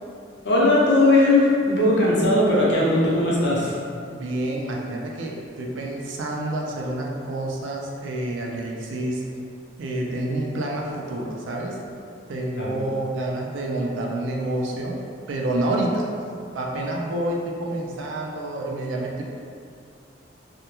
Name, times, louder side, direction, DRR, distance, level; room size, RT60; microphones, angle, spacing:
voice 1, 0.4-3.8 12.6-12.7, left 2 dB, 60° left, -6 dB, 0.6 m, -18 dB
voice 2, 4.1-9.2 9.8-11.8 12.3-14.9 15.3-16.1 16.5-19.2, right 1 dB, 80° right, -1 dB, 0.4 m, -28 dB
2.2 x 2.1 x 2.9 m, 2.4 s
head